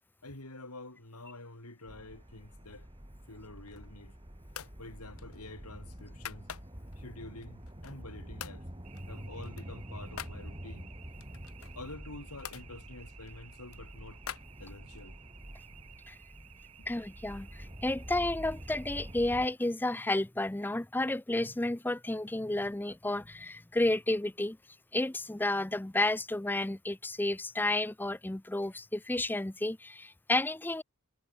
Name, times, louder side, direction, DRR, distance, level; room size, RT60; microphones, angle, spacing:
voice 1, 0.2-2.9 3.3-4.1 4.8-6.5 7.0-8.7 9.1-10.9 11.8-14.2 14.6-15.2 16.8-16.9, left 2 dB, 90° left, 6.1 m, -48 dB
sound 1, 1.9-19.5, equal, 25° right, 3.1 m, -47 dB
sound 2, 3.5-4.0 4.5-4.8 5.2-7.0 7.4-8.1 8.4-8.6 8.9-10.4 11.2-12.7 13.2-15.1, left 9 dB, 70° left, 0.8 m, -46 dB
sound 3, 8.8-19.4, right 12 dB, 75° right, 3.1 m, -57 dB
voice 2, 16.9-24.6 24.9-30.8, left 2 dB, 10° left, 0.5 m, -31 dB
head